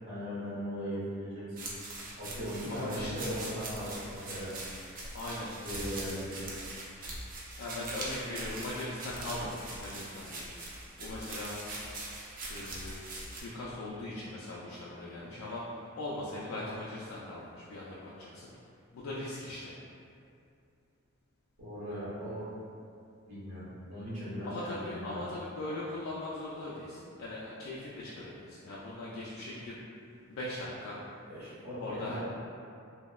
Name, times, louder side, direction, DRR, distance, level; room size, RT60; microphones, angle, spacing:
voice 1, 0.1-1.6 2.1-4.5 5.6-6.5 16.5-16.7 21.6-22.5 23.3-25.2 31.3-32.2, equal, 80° right, -9 dB, 0.9 m, -38 dB
sound 1, 1.6-13.4, right 2 dB, 40° right, 0.3 m, -42 dB
voice 2, 2.7-3.1 5.1-5.5 7.6-10.6 11.0-11.5 12.5-13.0 13.3-18.5 18.9-19.7 24.4-29.7 30.3-31.0 31.8-32.2, left 1 dB, 85° left, -7 dB, 0.3 m, -40 dB
2.7 x 2.0 x 2.2 m, 2.5 s
head